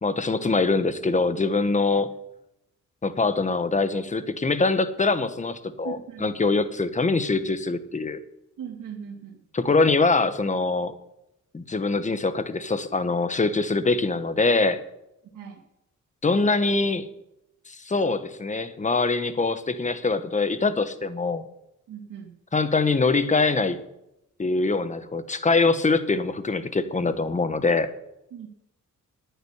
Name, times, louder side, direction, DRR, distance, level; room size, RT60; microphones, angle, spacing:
voice 1, 0.0-2.1 3.0-8.2 9.5-10.9 11.5-14.8 16.2-17.1 17.7-21.4 22.5-23.8 24.4-27.9, left 3 dB, 25° left, 11 dB, 1.1 m, -23 dB
voice 2, 5.8-6.3 8.6-9.4 15.3-15.6 21.9-22.3 28.3-28.5, right 8 dB, 85° right, 1 dB, 2.0 m, -39 dB
10.5 x 9.2 x 9.9 m, 0.86 s
cardioid pair, 105°, 31 cm